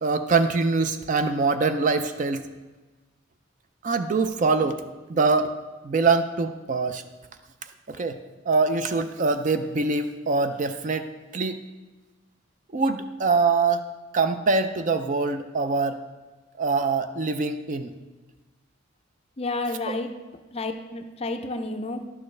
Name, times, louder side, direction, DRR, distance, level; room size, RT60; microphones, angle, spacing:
voice 1, 0.0-2.4 3.8-4.8 5.1-5.5 5.8-7.0 7.9-8.2 8.5-11.6 12.7-13.8 14.1-16.0 16.6-17.9 19.9-20.0, right 4 dB, 35° right, 9 dB, 0.4 m, -24 dB
voice 2, 19.4-20.1 20.5-22.0, left 2 dB, 30° left, 7 dB, 0.5 m, -30 dB
11.0 x 6.5 x 3.2 m, 1.2 s
head